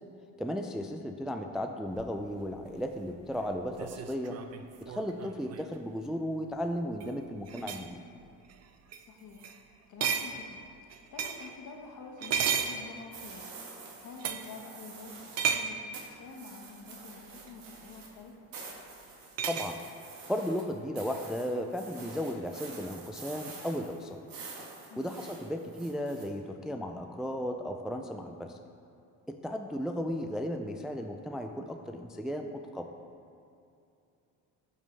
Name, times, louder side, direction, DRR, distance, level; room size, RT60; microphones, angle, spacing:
voice 1, 0.4-4.4 4.8-8.0 19.5-19.8 20.3-24.2 25.0-28.6 29.3-32.9, equal, ahead, 4 dB, 0.3 m, -35 dB
sound 1, 2.0-5.8 6.8-7.1 7.5-7.9 8.5-8.6 8.9-9.0 9.4-9.6 10.0-11.6 12.2-13.4 14.2-14.5 15.4-15.8 17.5-17.6 19.4-19.7, right 7 dB, 50° right, 0.6 m, -34 dB
voice 2, 9.1-9.5 9.9-13.5 14.0-18.4 24.9-25.1, left 4 dB, 60° left, 2 dB, 1.3 m, -48 dB
sound 2, 13.1-15.5 15.9-26.3, right 4 dB, 75° right, 1.7 m, -47 dB
12.5 x 5.5 x 3.3 m, 2.6 s
cardioid pair, 105°, 34 cm